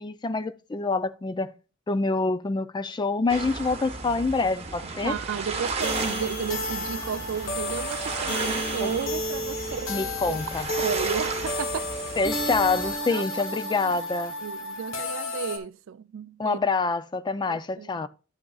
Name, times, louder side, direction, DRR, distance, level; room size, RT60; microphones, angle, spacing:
voice 1, 0.0-1.5 1.9-5.1 8.8-8.9 9.9-10.7 12.2-14.3 16.4-18.1, left 3 dB, 20° left, 0.4 m, -26 dB
sound 1, 3.3-13.0, right 4 dB, 30° right, 1.1 m, -34 dB
voice 2, 4.8-10.4 10.8-12.2 13.1-13.2 13.8-13.9 14.4-16.6 17.5-18.1, right 7 dB, 80° right, 0.4 m, -33 dB
sound 2, 5.8-15.6, left 1 dB, 90° left, 1.2 m, -32 dB
11.5 x 6.1 x 2.4 m
head